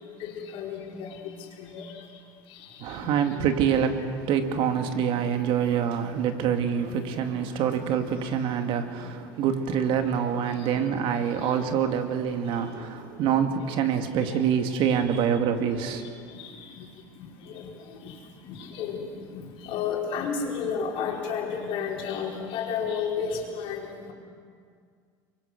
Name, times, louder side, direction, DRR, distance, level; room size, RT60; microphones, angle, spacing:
voice 1, 0.2-1.3 1.6-1.9 3.0-3.1 3.5-3.6 4.3-4.4 4.7-4.8 5.2-5.3 6.0-6.1 6.4-6.5 6.9-7.0 7.3-7.4 9.0-9.1 9.4-9.5 9.9-10.0 10.3-10.4 10.7-10.9 11.4-11.5 13.3-13.4 14.3-14.4 16.3-16.5 16.8-16.9 17.2-17.7 18.0-18.1 18.4-24.1, left 6 dB, 60° left, -1 dB, 5.1 m, -33 dB
voice 2, 2.8-16.0, right 8 dB, 55° right, 6 dB, 2.2 m, -26 dB
24.5 x 23.0 x 6.7 m, 2.1 s
supercardioid pair, 100°, 11 cm